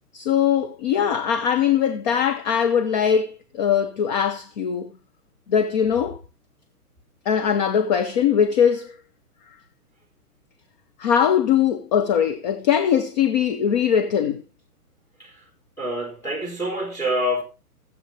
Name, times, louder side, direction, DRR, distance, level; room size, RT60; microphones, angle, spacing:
voice 1, 0.1-4.9 5.5-6.2 7.3-8.9 11.0-14.4, left 8 dB, 30° left, 0.8 m, -21 dB
voice 2, 15.8-17.4, equal, 5° left, 3.5 m, -26 dB
20.5 x 8.0 x 2.7 m
figure-of-eight pair, 130°, 46 cm